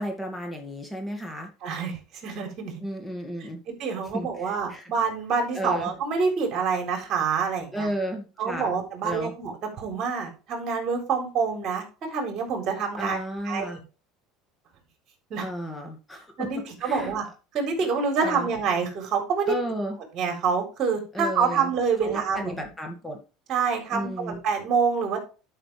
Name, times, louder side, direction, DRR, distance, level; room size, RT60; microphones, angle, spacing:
voice 1, 0.0-1.5 2.8-3.6 4.1-4.9 5.5-5.9 7.7-9.3 13.0-13.8 15.4-16.5 16.8-17.1 18.2-18.5 19.5-20.0 21.1-21.7 22.0-23.2 23.9-24.4, equal, 10° left, 3 dB, 2.1 m, -33 dB
voice 2, 1.6-2.8 3.8-7.9 8.4-11.8 12.1-13.2 13.5-13.7 15.3-15.5 16.4-17.2 17.5-19.5 20.1-22.7 23.5-25.2, right 5 dB, 50° right, 3 dB, 3.9 m, -27 dB
11.0 x 5.9 x 3.4 m, 0.33 s
supercardioid pair, 105°, 0 cm